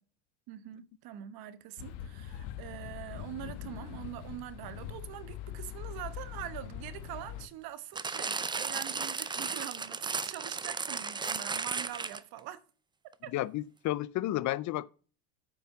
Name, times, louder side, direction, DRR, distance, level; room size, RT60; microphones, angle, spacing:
voice 1, 0.5-12.6 13.2-13.3, right 13 dB, 60° right, 1.2 m, -44 dB
sound 1, 1.8-7.5, left 10 dB, 80° left, 1.3 m, -42 dB
sound 2, 8.0-12.4 13.1-13.2, right 4 dB, 10° right, 0.4 m, -35 dB
voice 2, 13.3-14.9, left 15 dB, 45° left, 0.5 m, -32 dB
8.8 x 6.0 x 5.8 m
supercardioid pair, 105°, 42 cm